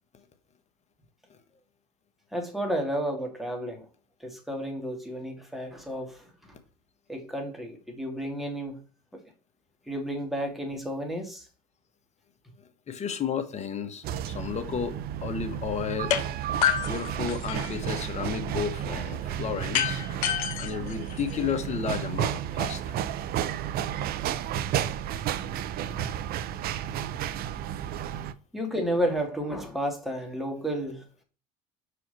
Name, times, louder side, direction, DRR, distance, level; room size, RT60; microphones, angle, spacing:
voice 1, 2.3-3.9 4.2-6.3 7.1-8.8 9.9-11.5 28.5-31.0, equal, ahead, 2.7 m, -31 dB
voice 2, 12.9-16.1 16.8-20.0 20.6-22.8 25.5-25.6 25.9-26.1 28.1-28.3, left 7 dB, 35° left, 1.4 m, -33 dB
sound 1, 14.0-28.3, right 10 dB, 55° right, 0.6 m, -32 dB
sound 2, 16.1-16.2 16.6-17.8 19.7-21.7, left 10 dB, 80° left, 1.1 m, -28 dB
5.8 x 4.9 x 4.3 m
hypercardioid pair, 75°, 19 cm